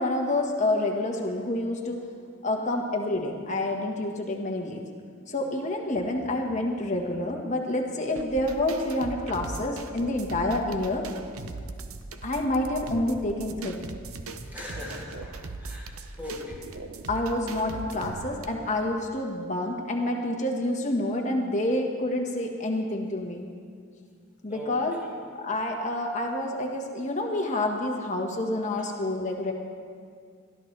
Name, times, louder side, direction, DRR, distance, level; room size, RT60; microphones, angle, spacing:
voice 1, 0.0-2.0 2.4-4.8 5.3-11.0 12.2-13.8 17.1-23.5 24.4-25.0 25.3-29.5, left 1 dB, 35° left, 1 dB, 1.5 m, -28 dB
sound 1, 8.2-18.4, right 3 dB, 80° right, 0.8 m, -40 dB
voice 2, 14.3-16.7 24.5-24.9, left 1 dB, 10° right, -6 dB, 2.8 m, -40 dB
21.5 x 13.5 x 3.3 m, 2.1 s
head